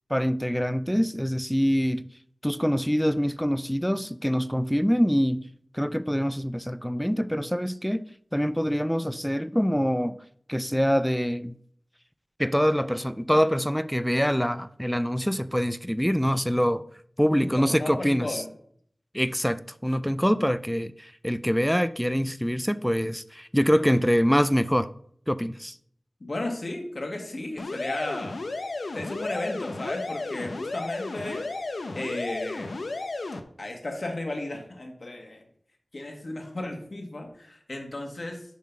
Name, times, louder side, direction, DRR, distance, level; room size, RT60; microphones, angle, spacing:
voice 1, 0.1-2.0 2.4-5.4 5.7-8.0 8.3-10.2 10.5-11.6 12.4-16.8 17.2-18.4 19.1-24.9 25.3-25.7, equal, 5° left, 0.3 m, -25 dB
voice 2, 17.3-18.5 26.2-28.4 28.9-31.5 31.9-32.8 33.6-35.4 35.9-38.4, left 2 dB, 55° left, 1.4 m, -34 dB
sound 1, 27.6-33.4, left 2 dB, 70° left, 0.6 m, -33 dB
7.3 x 3.8 x 5.8 m
wide cardioid pair, 80°, 0 cm